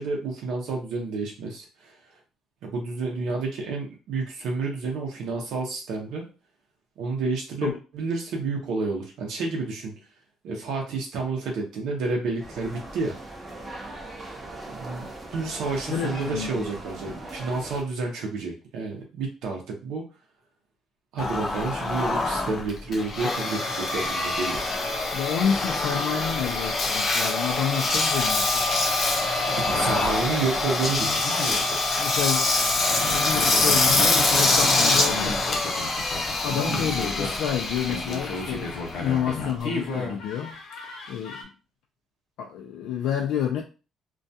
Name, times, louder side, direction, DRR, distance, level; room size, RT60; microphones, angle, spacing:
voice 1, 0.0-2.0 2.6-6.2 7.0-9.9 10.4-13.2 14.7-15.0 15.3-20.0 21.1-24.6 29.6-31.8 36.7-37.0, right 3 dB, 80° right, 0.6 m, -30 dB
sound 1, 12.4-17.8, right 2 dB, 15° right, 0.5 m, -39 dB
voice 2, 15.9-16.6 25.1-28.6 32.0-35.4 36.4-40.5 41.1-41.5 42.4-43.6, left 8 dB, 90° left, 0.4 m, -29 dB
Engine, 21.2-39.6, left 2 dB, 30° left, 0.5 m, -25 dB
sound 2, 29.5-31.6 32.8-41.4, left 3 dB, 75° left, 0.8 m, -34 dB
2.3 x 2.2 x 2.6 m
cardioid pair, 175°, 0 cm